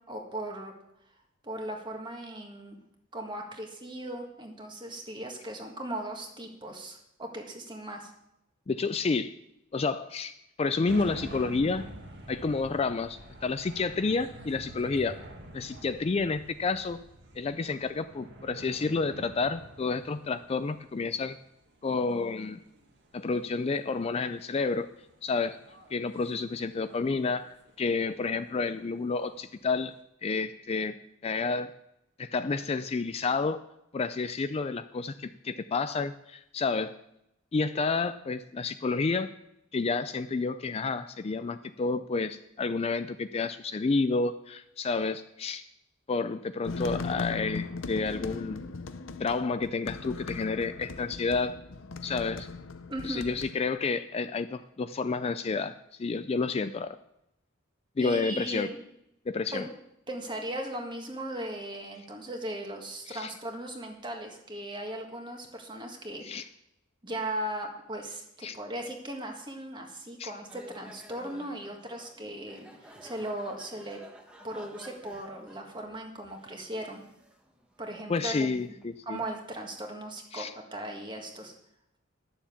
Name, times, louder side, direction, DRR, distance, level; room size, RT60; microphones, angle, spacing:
voice 1, 0.1-0.7 1.4-2.8 3.1-8.1 52.9-53.3 58.0-58.8 59.5-59.7 60.1-66.5 67.0-74.0 74.4-77.0 77.8-78.6 79.1-80.5 80.7-81.5, right 1 dB, 25° right, 2 dB, 1.7 m, -38 dB
voice 2, 8.7-9.3 9.7-11.8 12.3-15.2 15.5-17.0 17.4-21.4 21.8-22.6 23.1-24.9 25.2-25.6 25.9-29.9 30.2-31.0 31.2-31.7 32.2-33.6 33.9-36.9 37.5-39.3 39.7-45.6 46.1-48.6 49.2-51.6 52.0-52.5 53.0-57.0 58.0-58.7 59.3-59.6 63.1-63.3 66.2-66.4 68.4-68.6 70.2-70.3 78.1-79.2 80.3-80.5, left 4 dB, 30° left, 11 dB, 0.4 m, -30 dB
sound 1, 10.8-30.0, right 1 dB, 60° right, 1.7 m, -48 dB
sound 2, 46.7-53.6, left 3 dB, 70° left, 0.7 m, -38 dB
sound 3, 70.5-79.3, equal, 5° right, 1.2 m, -53 dB
11.5 x 7.2 x 7.1 m, 0.82 s
head